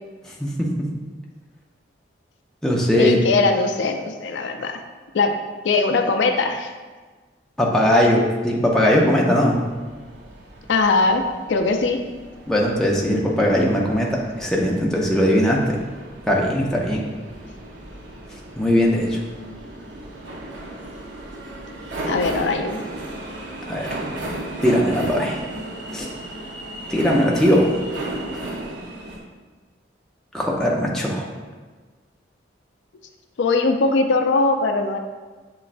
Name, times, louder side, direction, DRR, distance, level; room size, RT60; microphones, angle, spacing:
voice 1, 0.4-0.9 2.6-3.2 7.6-9.6 12.5-15.8 16.3-17.1 18.6-19.2 23.7-24.0 24.6-25.4 25.9-26.1 26.9-27.7 30.3-31.3, equal, 5° left, -3 dB, 0.5 m, -19 dB
voice 2, 3.0-4.8 5.1-5.3 5.6-6.7 10.7-11.2 11.5-12.0 22.0-22.8 33.4-35.0, left 3 dB, 80° left, 5 dB, 0.4 m, -20 dB
sound 1, 9.6-29.2, right 1 dB, 75° right, 0.7 m, -35 dB
6.9 x 3.0 x 2.5 m, 1.4 s
head